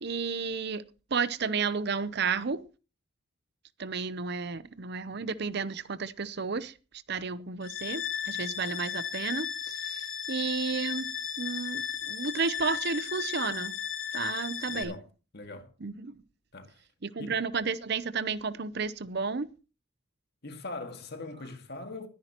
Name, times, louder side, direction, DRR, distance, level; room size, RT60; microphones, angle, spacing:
voice 1, 0.0-0.8 1.1-2.6 3.8-6.7 7.1-11.1 11.4-13.8 14.1-15.0 15.8-16.2 17.0-19.5, right 5 dB, 50° right, 0.7 m, -32 dB
sound 1, 7.6-14.8, left 8 dB, 70° left, 2.6 m, -35 dB
voice 2, 14.7-15.1 15.3-15.7 16.5-16.8 17.2-17.4 20.4-22.1, left 2 dB, 50° left, 1.9 m, -41 dB
21.0 x 10.0 x 3.0 m
head